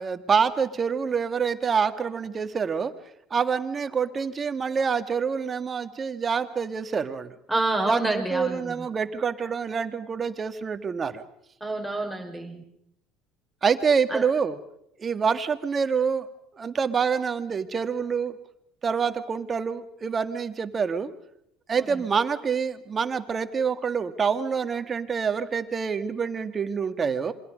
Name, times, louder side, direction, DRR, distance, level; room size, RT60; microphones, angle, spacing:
voice 1, 0.0-2.9 3.3-7.4 7.9-11.2 13.6-14.6 15.0-16.3 16.6-18.4 18.8-21.1 21.7-27.3, right 6 dB, 35° right, 9 dB, 1.9 m, -26 dB
voice 2, 7.5-8.9 11.6-12.6 14.1-14.2 21.8-21.9, right 2 dB, ahead, 2 dB, 5.4 m, -28 dB
27.0 x 23.5 x 5.3 m, 0.75 s
hypercardioid pair, 70°, 0 cm